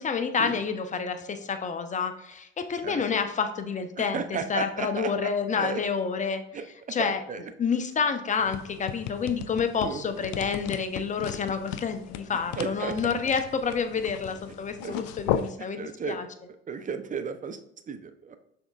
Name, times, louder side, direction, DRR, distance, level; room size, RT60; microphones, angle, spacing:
voice 1, 0.0-6.4 6.9-7.2 7.6-15.8 16.1-16.3, left 6 dB, 25° left, 8 dB, 0.6 m, -29 dB
voice 2, 4.0-5.3 5.6-5.8 6.5-6.7 7.0-7.4 9.8-10.1 12.6-13.0 14.8-15.0 15.6-16.2 16.7-17.6 17.9-18.4, right 6 dB, 25° right, 9 dB, 0.5 m, -34 dB
sound 1, 8.4-15.5, left 9 dB, 60° left, 0.4 m, -36 dB
6.2 x 3.6 x 2.3 m, 0.77 s
hypercardioid pair, 65°, 33 cm